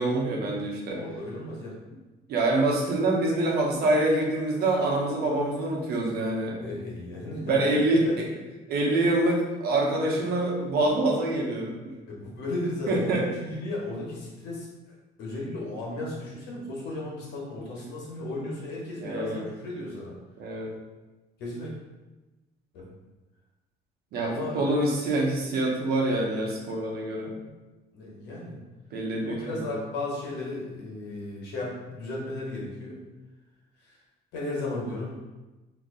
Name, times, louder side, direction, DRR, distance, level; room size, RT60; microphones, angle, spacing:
voice 1, 0.0-1.0 2.3-6.6 7.4-8.0 8.7-11.7 12.9-13.2 19.0-19.4 20.4-20.7 24.1-27.3 28.9-29.7, right 2 dB, 70° right, -2 dB, 0.9 m, -25 dB
voice 2, 0.9-1.8 6.6-7.8 8.0-8.2 12.1-20.1 21.4-21.7 22.7-22.9 24.2-24.8 27.9-28.6 29.2-33.0 33.8-34.0 34.3-35.1, left 2 dB, 80° left, -3 dB, 1.2 m, -35 dB
2.8 x 2.6 x 3.7 m, 1.1 s
cardioid pair, 110°, 17 cm